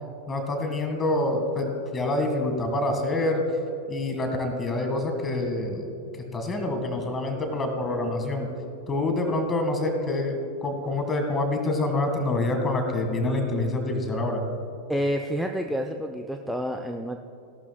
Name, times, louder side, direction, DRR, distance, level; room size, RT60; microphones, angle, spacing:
voice 1, 0.3-3.4 3.9-5.8 6.3-8.5 8.9-14.4, left 2 dB, 20° left, 4 dB, 1.8 m, -26 dB
voice 2, 14.9-17.2, equal, ahead, 4 dB, 0.5 m, -29 dB
17.0 x 12.0 x 2.3 m, 2.9 s
figure-of-eight pair, 90°, 0 cm